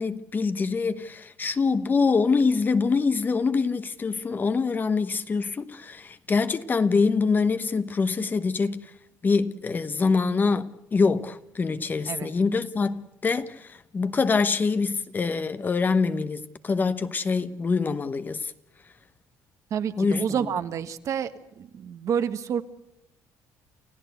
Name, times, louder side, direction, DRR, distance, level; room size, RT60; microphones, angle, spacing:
voice 1, 0.0-8.8 9.2-13.7 13.9-18.4 20.0-20.5, left 4 dB, 30° left, 1.1 m, -25 dB
voice 2, 19.7-21.3 21.6-22.6, right 8 dB, 55° right, 1.5 m, -28 dB
29.0 x 15.0 x 8.1 m
cardioid pair, 110°, 7 cm